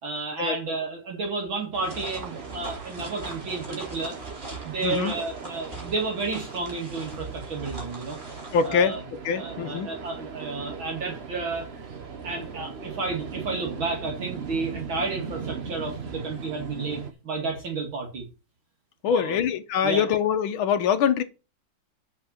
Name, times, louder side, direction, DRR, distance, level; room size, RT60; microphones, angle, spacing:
voice 1, 0.0-4.2 4.5-8.2 8.6-9.0 9.3-11.8 12.2-18.2 19.1-19.4 19.8-20.0, right 3 dB, 70° right, 3.1 m, -31 dB
sound 1, 1.7-17.1, right 5 dB, 40° right, 1.0 m, -39 dB
sound 2, 1.8-8.7, right 2 dB, 25° right, 3.2 m, -41 dB
voice 2, 4.8-5.1 8.5-9.0 9.2-9.9 19.0-21.2, left 7 dB, 75° left, 1.8 m, -24 dB
7.8 x 5.9 x 7.3 m
omnidirectional pair, 2.3 m